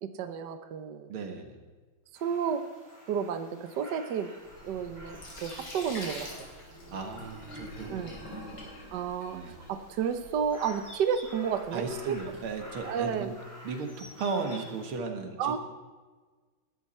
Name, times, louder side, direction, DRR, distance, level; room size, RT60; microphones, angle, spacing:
voice 1, 0.0-1.1 2.2-2.6 3.1-4.3 4.6-6.3 7.9-8.2 8.9-9.4 9.7-12.1 12.8-13.3 15.4-15.6, right 7 dB, 60° right, 8 dB, 1.4 m, -31 dB
voice 2, 1.1-1.6 6.9-8.7 9.3-9.6 11.7-13.4 13.6-15.6, right 4 dB, 85° right, 5 dB, 2.5 m, -36 dB
sound 1, 2.1-15.0, equal, 10° left, 3.2 m, -51 dB
Sink (filling or washing), 4.4-13.2, left 1 dB, 65° left, 4.6 m, -46 dB
20.5 x 12.0 x 4.3 m, 1.4 s
omnidirectional pair, 2.3 m